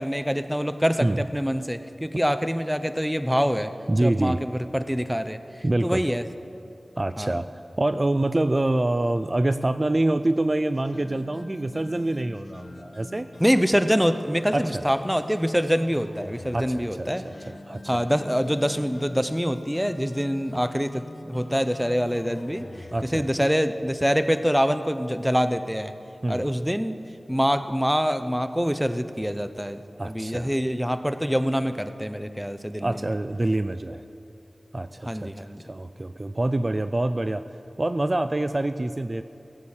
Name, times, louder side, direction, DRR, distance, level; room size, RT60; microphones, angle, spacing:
voice 1, 0.0-3.7 4.0-5.4 5.8-6.2 7.2-7.4 13.4-17.3 17.9-26.0 26.3-27.0 27.3-33.1 35.0-35.6, equal, 5° right, 10 dB, 0.7 m, -25 dB
voice 2, 3.9-4.4 5.6-6.1 7.0-7.5 7.8-13.3 14.5-14.8 16.5-18.0 22.9-23.3 26.2-26.4 30.0-30.5 32.8-34.0 34.7-37.4 37.8-39.2, right 2 dB, 40° right, 11 dB, 0.4 m, -26 dB
sound 1, 10.7-23.6, left 2 dB, 65° left, 0.6 m, -45 dB
17.5 x 8.4 x 7.3 m, 2.7 s
wide cardioid pair, 50°, 0 cm